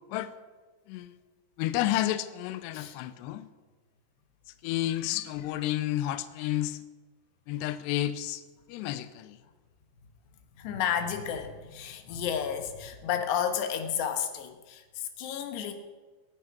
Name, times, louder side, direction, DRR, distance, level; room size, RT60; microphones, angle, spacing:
voice 1, 1.6-3.5 4.6-6.8 7.5-8.4 8.7-9.4, left 13 dB, 85° left, 2.4 m, -31 dB
voice 2, 4.7-5.2 10.6-15.7, left 8 dB, 70° left, 3.2 m, -32 dB
23.5 x 8.9 x 5.9 m
omnidirectional pair, 5.7 m